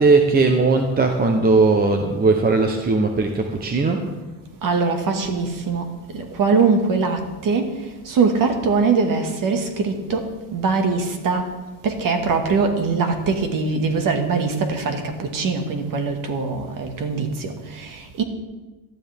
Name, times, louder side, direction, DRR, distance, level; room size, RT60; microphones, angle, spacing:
voice 1, 0.0-4.0, right 3 dB, 20° right, 4 dB, 0.9 m, -18 dB
voice 2, 4.6-5.8 6.1-7.7 8.1-10.2 10.5-11.5 11.8-18.2, right 4 dB, 40° right, 5 dB, 1.9 m, -22 dB
18.5 x 12.5 x 3.6 m, 1.2 s
cardioid pair, 150°, 48 cm